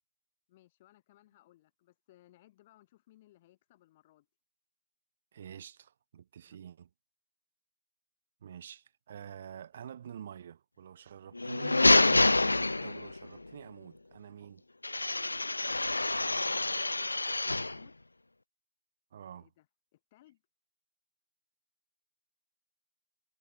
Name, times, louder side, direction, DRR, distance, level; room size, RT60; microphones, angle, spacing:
voice 1, 0.5-4.3 6.5-6.6 16.2-17.9 19.3-19.7 19.9-20.4, left 15 dB, 15° left, 7.3 m, -63 dB
voice 2, 5.3-6.9 8.4-14.6 19.1-19.5, right 9 dB, 20° right, 1.9 m, -48 dB
sound 1, 11.3-13.3 14.8-17.8, left 2 dB, 75° left, 0.9 m, -27 dB
figure-of-eight pair, 175°, 0 cm